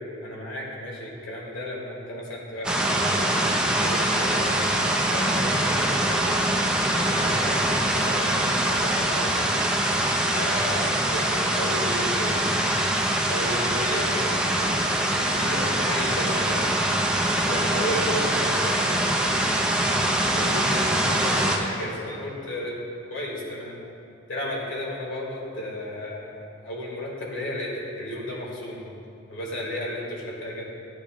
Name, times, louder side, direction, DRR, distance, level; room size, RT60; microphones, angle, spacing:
voice 1, 0.0-6.4 6.9-9.5 10.3-12.4 13.3-16.7 17.3-19.8 20.3-22.8 23.1-23.8 24.3-28.8 29.3-30.6, left 1 dB, 85° left, -3 dB, 2.2 m, -33 dB
sound 1, 2.6-21.6, right 1 dB, 5° right, 0.6 m, -23 dB
12.5 x 8.9 x 2.5 m, 2.6 s
head